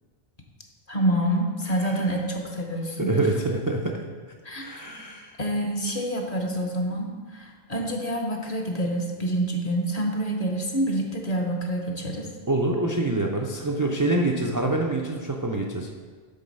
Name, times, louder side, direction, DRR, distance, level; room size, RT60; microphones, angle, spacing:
voice 1, 0.9-3.2 4.4-4.6 5.4-12.3, right 1 dB, 40° left, 2 dB, 0.9 m, -27 dB
voice 2, 1.8-2.1 3.0-4.0 4.6-5.4 12.5-15.9, right 2 dB, 30° right, 0 dB, 0.3 m, -26 dB
7.7 x 3.9 x 5.3 m, 1.5 s
omnidirectional pair, 1.0 m